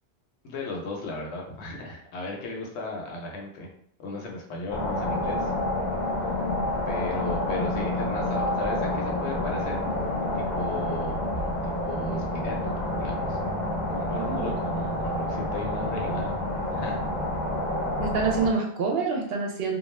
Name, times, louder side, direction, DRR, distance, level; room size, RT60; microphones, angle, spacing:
voice 1, 0.4-3.7 4.0-5.5 6.3-6.4 6.9-9.8 10.3-11.3 11.6-13.4 13.9-16.4 16.7-17.0, left 2 dB, 75° left, 1 dB, 0.9 m, -35 dB
sound 1, 4.7-18.5, left 1 dB, 50° left, 0.6 m, -28 dB
voice 2, 14.1-14.6 18.0-19.8, right 4 dB, 65° right, 1 dB, 0.7 m, -27 dB
2.3 x 2.2 x 3.1 m, 0.65 s
omnidirectional pair, 1.2 m